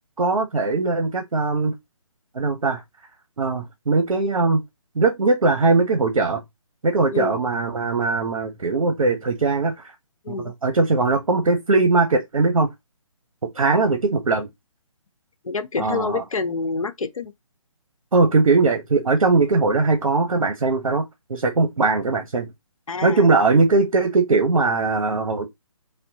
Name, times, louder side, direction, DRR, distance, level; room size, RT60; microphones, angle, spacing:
voice 1, 0.2-1.7 2.3-2.8 3.4-4.6 5.0-6.4 6.8-9.9 10.4-12.7 13.5-14.5 15.8-16.2 18.1-21.0 21.3-22.5 23.0-25.5, right 3 dB, 80° right, 0.8 m, -20 dB
voice 2, 15.4-17.3 22.9-23.3, left 4 dB, 80° left, 0.7 m, -27 dB
3.5 x 2.2 x 2.7 m
figure-of-eight pair, 150°, 17 cm